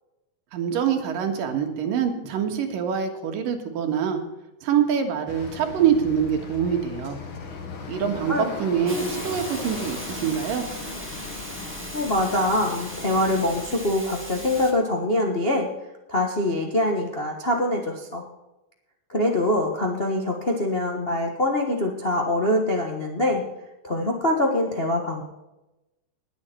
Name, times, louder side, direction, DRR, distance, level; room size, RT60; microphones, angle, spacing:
voice 1, 0.5-4.2 4.6-7.2 7.9-10.6, right 8 dB, 85° right, 4 dB, 3.3 m, -25 dB
urban neighbourhood, 5.3-13.7, left 4 dB, 45° left, 2.0 m, -37 dB
Hiss, 8.9-14.7, equal, 5° right, 1.5 m, -38 dB
voice 2, 11.9-15.7 16.1-18.3 19.1-23.4 23.8-25.2, left 1 dB, 85° left, 1 dB, 0.5 m, -24 dB
20.0 x 8.1 x 4.4 m, 0.98 s
omnidirectional pair, 3.8 m